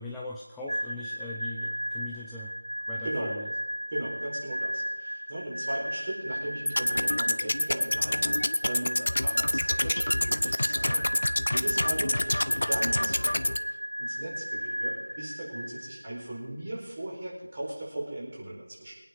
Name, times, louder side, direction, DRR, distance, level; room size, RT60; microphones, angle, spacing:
voice 1, 0.0-2.6 2.9-3.5, left 2 dB, 5° left, -5 dB, 0.5 m, -40 dB
sound 1, 0.7-16.3, equal, 85° right, 1.1 m, -34 dB
voice 2, 3.0-3.4 3.9-8.3 8.6-13.7 14.0-19.0, right 1 dB, 25° right, -4 dB, 4.7 m, -37 dB
sound 2, 6.7-13.6, left 1 dB, 55° left, 0.7 m, -27 dB
22.5 x 9.1 x 4.7 m, 1.1 s
figure-of-eight pair, 170°, 0 cm